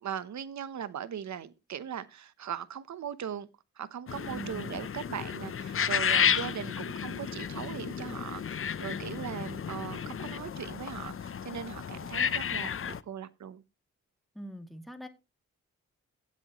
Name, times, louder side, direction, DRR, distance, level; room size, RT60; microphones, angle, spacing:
voice 1, 0.0-3.5 3.8-13.6, right 9 dB, 65° right, 0.9 m, -39 dB
sound 1, 4.1-13.0, left 7 dB, 45° left, 0.7 m, -32 dB
voice 2, 4.3-4.7 14.3-15.1, right 1 dB, ahead, 2.4 m, -42 dB
16.5 x 8.3 x 3.0 m
cardioid pair, 65°, 30 cm